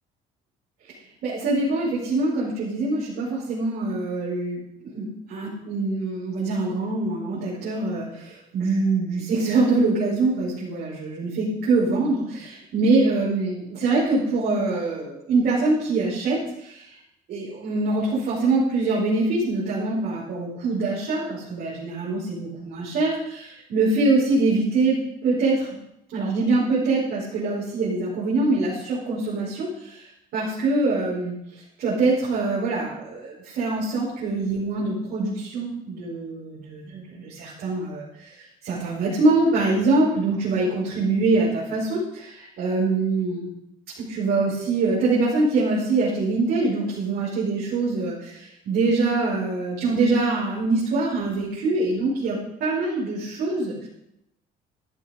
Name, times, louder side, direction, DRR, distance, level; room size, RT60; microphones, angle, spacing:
voice 1, 1.2-4.6 4.9-17.0 17.3-25.0 25.2-25.8 26.1-43.5 44.0-53.9, right 3 dB, 70° right, -7 dB, 5.1 m, -24 dB
13.5 x 11.0 x 5.1 m, 0.82 s
cardioid pair, 110°, 17 cm